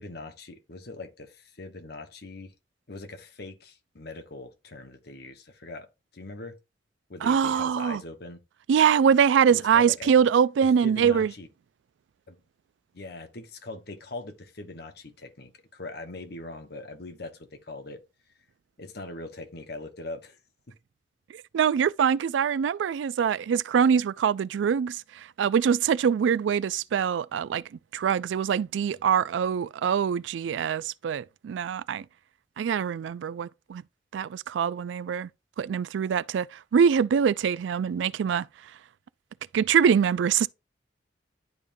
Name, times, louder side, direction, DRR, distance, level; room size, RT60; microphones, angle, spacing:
voice 1, 0.0-2.5 2.9-5.9 6.1-6.6 7.1-8.4 9.5-10.1 10.8-11.5 12.3-12.4 12.9-18.0 18.8-20.4, left 2 dB, 60° left, 1.1 m, -41 dB
voice 2, 7.2-8.0 8.7-11.3 21.3-27.6 27.9-32.1 32.6-33.8 34.1-35.3 35.6-38.5 39.5-40.5, right 7 dB, 85° right, 0.3 m, -24 dB
11.0 x 3.6 x 2.6 m
head